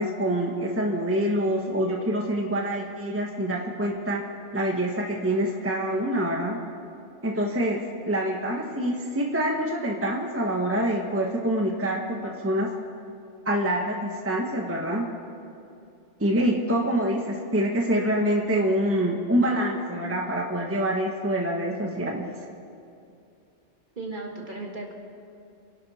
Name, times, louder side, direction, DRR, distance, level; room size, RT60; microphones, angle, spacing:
voice 1, 0.0-4.2 4.5-6.6 7.2-7.8 8.0-12.7 13.4-15.0 16.2-22.3, right 1 dB, 10° right, 0 dB, 1.2 m, -26 dB
voice 2, 24.0-24.9, right 2 dB, 40° right, 0 dB, 2.1 m, -35 dB
27.0 x 11.5 x 4.3 m, 2.6 s
omnidirectional pair, 1.3 m